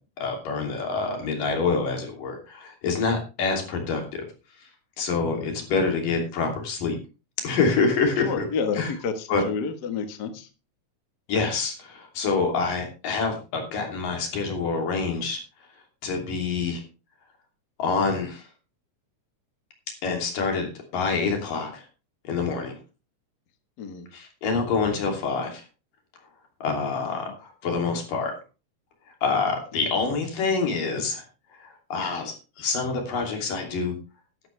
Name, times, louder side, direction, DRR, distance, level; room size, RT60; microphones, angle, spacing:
voice 1, 0.2-4.2 5.0-7.0 7.4-8.4 8.8-8.9 9.3-9.4 11.3-15.4 16.0-16.8 17.8-18.4 20.0-21.8 22.3-22.8 24.1-25.6 26.6-28.3 29.2-31.2 31.6-33.9, left 4 dB, 90° left, 2 dB, 4.6 m, -26 dB
voice 2, 8.2-10.5 23.8-24.1 27.3-27.4 29.7-29.8, left 5 dB, 45° left, 7 dB, 1.4 m, -30 dB
12.5 x 11.5 x 3.3 m, 0.31 s
omnidirectional pair, 3.7 m